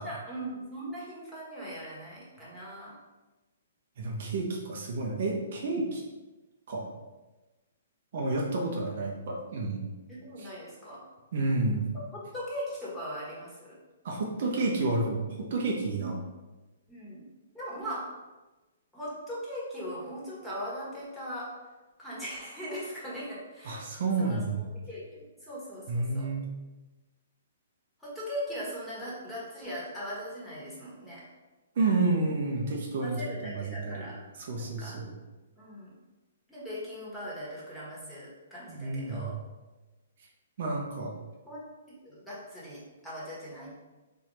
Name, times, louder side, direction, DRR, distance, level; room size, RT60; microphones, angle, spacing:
voice 1, 0.0-2.9 10.1-11.1 12.1-13.8 16.0-16.1 16.9-17.3 17.5-18.1 18.9-21.5 22.0-23.8 24.2-26.3 28.0-31.3 33.0-34.2 34.6-35.0 35.6-35.9 36.5-39.3 41.5-41.6 42.0-43.8, equal, 5° left, -8 dB, 1.4 m, -39 dB
voice 2, 4.0-6.0 6.7-6.9 8.1-9.8 10.4-10.5 11.3-11.8 14.0-16.2 23.6-24.7 25.9-26.5 31.8-34.1 34.5-35.1 38.7-39.3 40.6-41.1, right 3 dB, 55° right, -2 dB, 0.7 m, -30 dB
4.1 x 2.6 x 3.2 m, 1.1 s
figure-of-eight pair, 125°, 0 cm